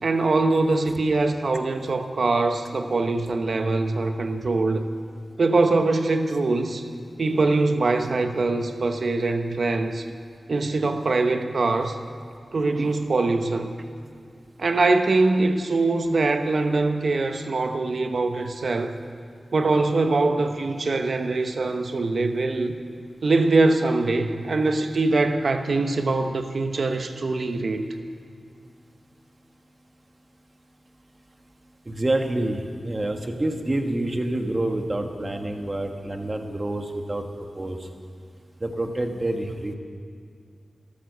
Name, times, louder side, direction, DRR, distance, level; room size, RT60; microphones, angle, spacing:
voice 1, 0.0-4.9 5.4-6.9 7.2-10.0 10.5-12.0 12.5-13.7 14.6-19.0 19.5-22.7 23.2-27.9, right 3 dB, 65° right, 7 dB, 1.0 m, -23 dB
voice 2, 31.9-37.2 37.5-37.8 38.6-39.8, right 1 dB, 30° right, 4 dB, 1.4 m, -27 dB
14.0 x 13.0 x 6.7 m, 2.3 s
wide cardioid pair, 65°, 0 cm